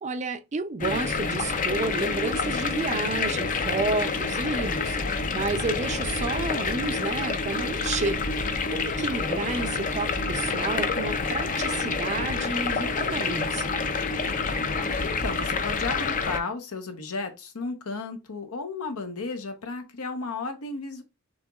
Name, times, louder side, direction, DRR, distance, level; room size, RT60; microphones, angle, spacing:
voice 1, 0.0-13.7, right 3 dB, 30° right, 0.4 m, -31 dB
sound 1, 0.8-16.4, left 4 dB, 35° left, 0.5 m, -28 dB
voice 2, 15.0-21.0, left 3 dB, 75° left, 0.9 m, -34 dB
6.3 x 3.0 x 2.4 m
head